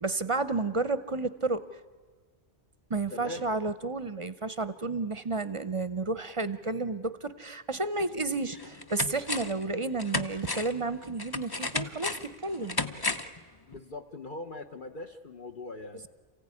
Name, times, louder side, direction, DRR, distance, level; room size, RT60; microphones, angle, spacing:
voice 1, 0.0-1.6 2.9-12.8, right 3 dB, 35° right, 14 dB, 0.7 m, -31 dB
voice 2, 3.1-3.5 13.7-16.1, left 2 dB, 50° left, 5 dB, 1.1 m, -41 dB
sound 1, 8.0-8.1 8.5-9.6 10.0-13.4 13.7-13.8, left 3 dB, 25° left, 0.8 m, -34 dB
28.0 x 16.0 x 9.8 m, 1.5 s
omnidirectional pair, 1.1 m